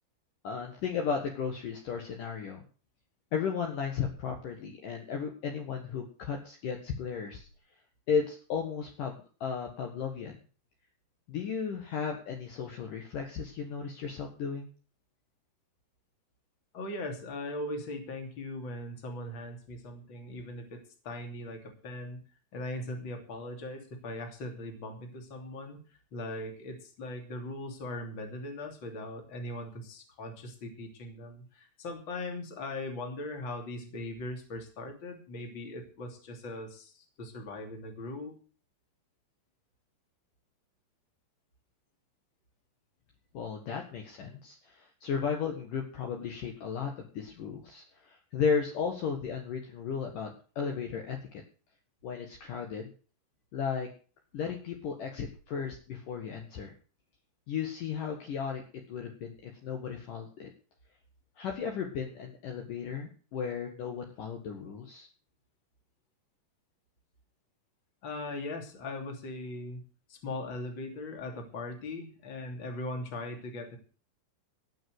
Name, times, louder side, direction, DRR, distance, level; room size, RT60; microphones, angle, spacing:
voice 1, 0.4-2.6 3.3-7.5 8.1-10.3 11.3-14.7 43.3-51.4 52.0-52.9 53.5-53.9 54.3-56.7 57.5-58.6 58.9-60.5 61.4-65.1, left 6 dB, 60° left, 2 dB, 3.0 m, -35 dB
voice 2, 16.7-22.2 22.5-25.8 26.1-38.4 68.0-69.8 70.1-73.8, left 2 dB, 30° left, 4 dB, 3.1 m, -39 dB
17.5 x 6.5 x 7.8 m, 0.38 s
omnidirectional pair, 4.9 m